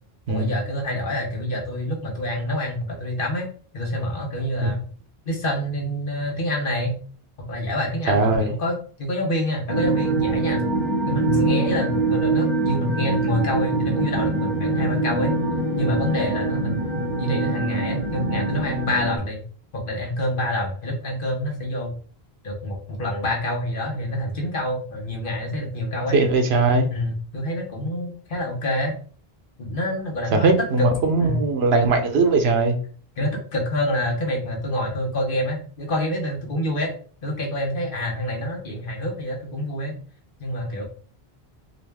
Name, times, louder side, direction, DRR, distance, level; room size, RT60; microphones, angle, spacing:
voice 1, 0.3-3.5 3.7-4.8 5.3-7.0 7.4-10.6 11.1-15.4 15.7-19.4 19.7-22.0 22.4-26.2 26.9-28.9 29.6-30.5 30.8-30.9 31.2-31.4 33.2-36.9 37.2-40.0 40.4-40.8, left 1 dB, 60° left, 1.2 m, -27 dB
voice 2, 8.1-8.5 26.1-26.9 30.3-32.8, right 3 dB, 85° right, 1.0 m, -19 dB
sound 1, 9.7-19.2, right 2 dB, 45° right, 1.3 m, -24 dB
3.9 x 2.6 x 3.3 m
omnidirectional pair, 1.0 m